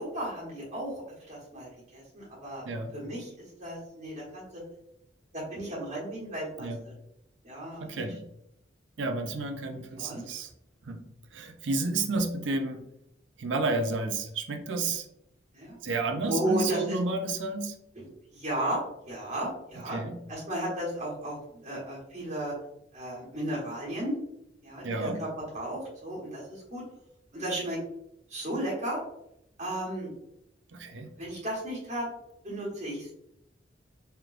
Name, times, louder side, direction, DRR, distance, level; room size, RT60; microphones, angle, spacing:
voice 1, 0.0-2.7 2.9-3.3 3.6-4.6 5.3-6.9 7.4-8.1 9.7-10.2 15.5-15.8 16.3-17.0 17.9-18.8 19.1-20.0 20.3-22.5 22.9-24.1 24.6-26.8 27.3-27.8 28.3-29.0 29.6-30.1 31.2-32.1 32.4-33.1, right 1 dB, 40° right, -6 dB, 1.3 m, -34 dB
voice 2, 7.8-8.3 9.0-10.5 10.8-11.0 11.3-12.8 13.4-15.1 15.8-17.8 19.9-20.2 24.8-25.2 30.7-31.2, right 3 dB, 75° right, 5 dB, 0.5 m, -31 dB
3.3 x 3.0 x 2.4 m, 0.78 s
head